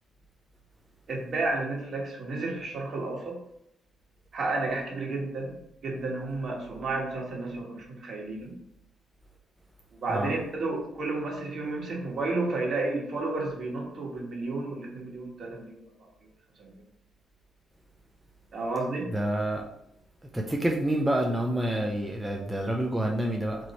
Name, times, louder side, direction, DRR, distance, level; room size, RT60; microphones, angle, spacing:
voice 1, 1.1-3.4 4.3-8.5 9.9-16.1 16.6-16.7 18.5-19.1, right 2 dB, 50° right, -1 dB, 1.5 m, -32 dB
voice 2, 19.1-19.6 20.3-23.6, right 1 dB, 10° right, 0 dB, 0.6 m, -28 dB
4.1 x 3.0 x 4.3 m, 0.78 s
cardioid pair, 80°, 0 cm